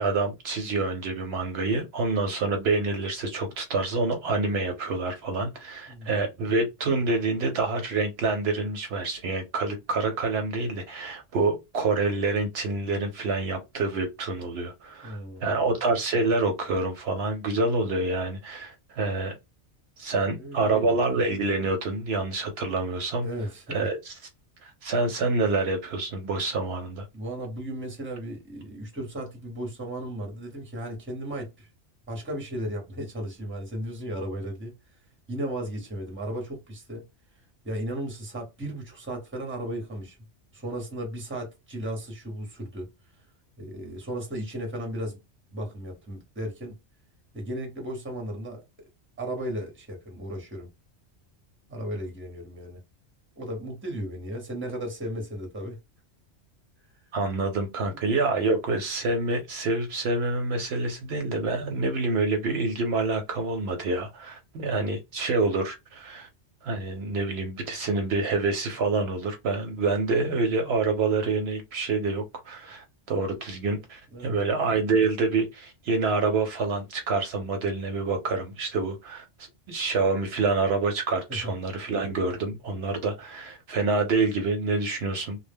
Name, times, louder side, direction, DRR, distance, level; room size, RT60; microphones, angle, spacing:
voice 1, 0.0-19.4 20.0-23.3 23.7-24.1 24.6-27.1 57.1-66.3 66.6-85.4, right 3 dB, 65° right, 0.8 m, -27 dB
voice 2, 5.9-6.3 15.0-15.7 20.3-21.1 23.2-23.8 27.1-31.7 32.1-35.0 35.3-37.1 37.6-40.2 40.5-42.9 43.1-43.2 43.6-45.2 45.5-46.8 47.3-48.6 49.2-50.7 51.7-52.8 53.4-55.8 56.9-57.0 57.9-58.0 74.1-74.3 81.3-81.5, right 1 dB, 10° right, 0.7 m, -35 dB
2.1 x 2.1 x 3.3 m
omnidirectional pair, 1.2 m